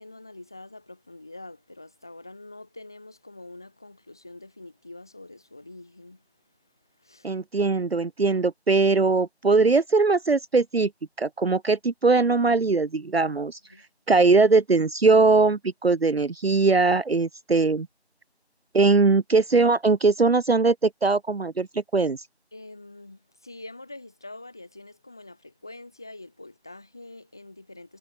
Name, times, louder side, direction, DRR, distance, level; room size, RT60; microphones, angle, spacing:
voice 1, 0.0-6.2 7.0-7.3 13.7-13.8 22.5-28.0, left 2 dB, 5° left, 2.6 m, -45 dB
voice 2, 7.2-10.9 11.2-13.6 14.1-17.9 18.7-21.7 21.9-22.2, right 3 dB, 65° right, 0.7 m, -21 dB
figure-of-eight pair, 175°, 33 cm